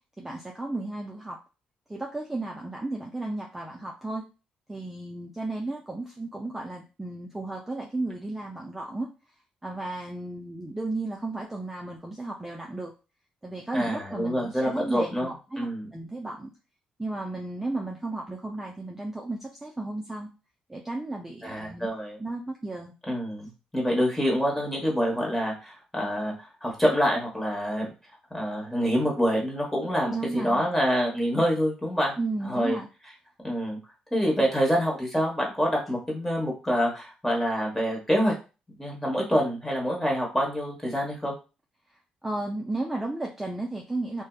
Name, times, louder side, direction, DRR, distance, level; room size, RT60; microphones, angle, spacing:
voice 1, 0.2-1.4 1.9-4.2 4.7-9.1 9.6-12.9 13.4-15.7 15.9-16.5 17.0-20.3 20.7-21.9 22.2-22.9 30.1-30.7 32.2-32.9 42.2-44.2, right 2 dB, 10° right, -1 dB, 0.4 m, -34 dB
voice 2, 13.7-15.9 21.4-22.2 23.1-27.9 28.3-32.1 32.4-32.8 33.4-33.8 34.1-38.3 38.8-41.3, equal, 10° left, -1 dB, 1.1 m, -26 dB
2.6 x 2.1 x 2.3 m, 0.31 s
cardioid pair, 85°, 2 cm